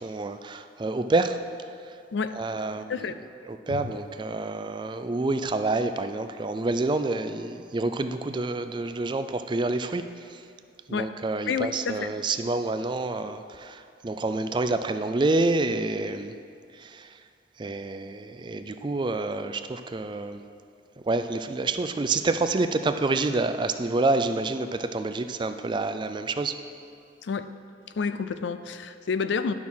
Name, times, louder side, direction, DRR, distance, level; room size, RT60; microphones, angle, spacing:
voice 1, 0.0-1.4 2.3-3.1 3.5-10.4 10.9-16.4 16.7-17.2 17.6-20.4 21.1-26.6, right 2 dB, 25° right, 9 dB, 0.3 m, -28 dB
voice 2, 2.1-2.4 2.9-3.2 3.7-3.9 10.9-11.2 11.4-12.1 27.2-27.5 28.0-29.5, left 5 dB, 75° left, 12 dB, 0.4 m, -29 dB
10.5 x 6.1 x 5.6 m, 2.4 s
head